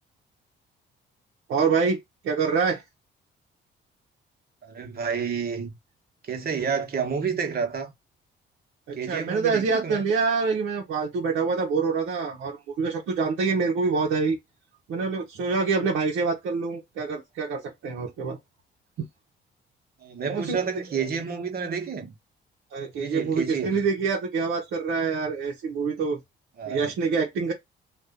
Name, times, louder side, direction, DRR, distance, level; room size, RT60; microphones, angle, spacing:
voice 1, 1.5-2.8 8.9-14.4 14.9-18.4 20.3-20.6 20.9-21.1 22.7-26.2 26.6-27.5, right 5 dB, 80° right, 1.0 m, -26 dB
voice 2, 4.6-5.8 6.2-7.9 9.0-10.1 20.0-22.1 23.0-23.8 26.6-26.9, right 6 dB, 50° right, 1.2 m, -30 dB
2.7 x 2.5 x 3.7 m
cardioid pair, 90°, 20 cm